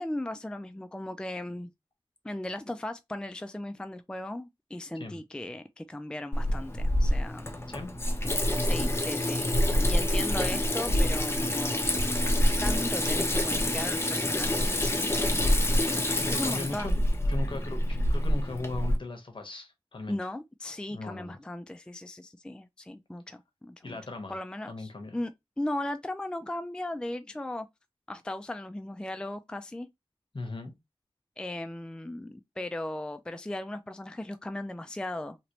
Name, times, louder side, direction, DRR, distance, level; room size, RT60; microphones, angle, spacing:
voice 1, 0.0-1.7 2.2-7.6 8.6-9.5 9.8-12.0 12.6-15.4 16.0-17.0 20.1-24.0 24.3-25.3 25.6-27.7 28.1-29.9 31.4-35.4, left 1 dB, 10° left, 0.3 m, -37 dB
Water tap faucet / Sink (filling or washing), 6.3-19.0, left 1 dB, 25° left, 0.8 m, -27 dB
voice 2, 16.3-16.9 17.3-20.2 20.9-21.4 23.8-24.4 24.7-25.2 30.3-30.7, left 2 dB, 55° left, 1.0 m, -38 dB
2.9 x 2.9 x 2.9 m
wide cardioid pair, 50°, 10 cm